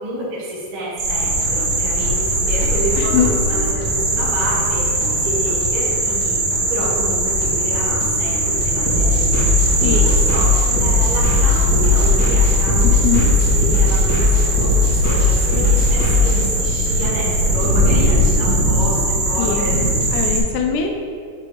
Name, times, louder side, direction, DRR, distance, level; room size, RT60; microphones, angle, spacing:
voice 1, 0.0-13.0 13.3-19.8, right 1 dB, 45° right, -8 dB, 2.0 m, -29 dB
sound 1, 1.0-20.4, right 1 dB, 75° right, 2.9 m, -20 dB
sound 2, 1.1-20.3, left 1 dB, 60° left, 2.4 m, -29 dB
voice 2, 3.0-3.3 9.8-10.1 12.8-13.3 19.4-19.7 20.1-20.9, left 8 dB, 85° left, 3 dB, 1.8 m, -21 dB
sound 3, 8.9-16.3, left 3 dB, 45° left, 1.4 m, -18 dB
6.7 x 3.6 x 4.8 m, 2.2 s
omnidirectional pair, 4.0 m